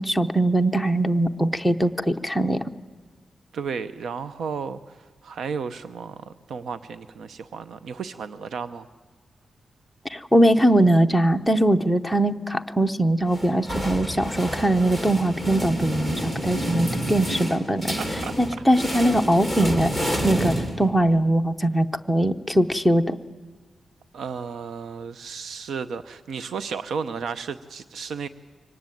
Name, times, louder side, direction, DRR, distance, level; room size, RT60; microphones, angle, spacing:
voice 1, 0.0-2.6 10.1-18.0 18.4-19.9 20.2-23.2, right 1 dB, ahead, 10 dB, 0.7 m, -21 dB
voice 2, 3.5-8.9 18.0-18.3 24.1-28.3, right 6 dB, 80° right, 12 dB, 0.7 m, -33 dB
sound 1, 13.3-21.2, equal, 20° right, 2.6 m, -29 dB
24.0 x 18.0 x 9.2 m, 1.4 s
wide cardioid pair, 170°, 0 cm